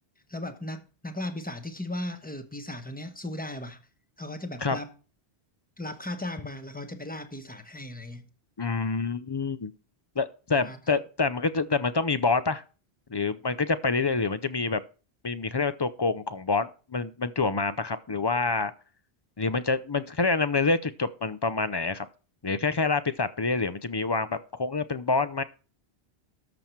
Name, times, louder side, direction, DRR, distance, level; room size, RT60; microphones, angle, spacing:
voice 1, 0.3-3.8 4.2-4.9 5.8-8.3 10.6-11.0, left 1 dB, 10° left, 1.1 m, -37 dB
voice 2, 8.6-9.7 10.2-12.6 13.1-14.8 15.2-18.7 19.4-22.1 22.4-25.4, left 4 dB, 35° left, 0.4 m, -27 dB
13.0 x 7.0 x 4.5 m
omnidirectional pair, 1.1 m